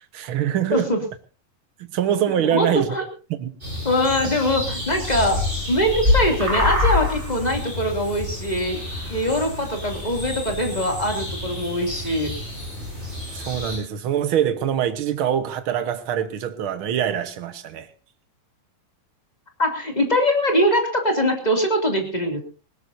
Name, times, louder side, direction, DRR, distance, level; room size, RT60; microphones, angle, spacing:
voice 1, 0.1-0.9 1.8-2.9 3.3-3.6 13.3-17.9, right 10 dB, 55° right, 1.5 m, -24 dB
voice 2, 0.7-1.0 2.4-3.0 3.8-5.4 5.7-8.8 9.1-12.3 19.6-22.4, equal, 15° left, 2.4 m, -22 dB
sound 1, 3.6-13.8, left 2 dB, 20° right, 7.2 m, -27 dB
20.0 x 19.0 x 2.7 m
omnidirectional pair, 3.7 m